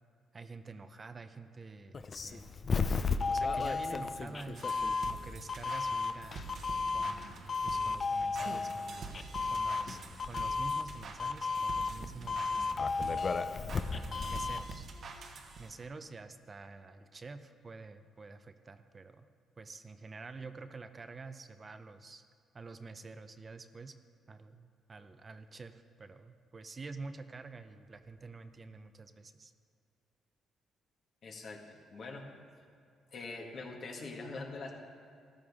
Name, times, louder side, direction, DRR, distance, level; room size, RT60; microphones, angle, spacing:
voice 1, 0.3-2.7 3.3-6.5 6.9-7.3 7.6-13.0 13.9-14.9 15.6-19.3 19.6-22.2 22.5-23.9 24.3-29.5, right 3 dB, 35° right, 9 dB, 0.6 m, -48 dB
Doorbell, 1.9-14.7, left 4 dB, 40° left, 0.5 m, -34 dB
sound 1, 4.6-15.9, right 4 dB, 60° right, 1.1 m, -47 dB
voice 2, 31.2-32.3 33.1-34.7, left 3 dB, 60° left, 0 dB, 1.7 m, -43 dB
14.0 x 11.0 x 3.6 m, 2.4 s
cardioid pair, 90°, 0 cm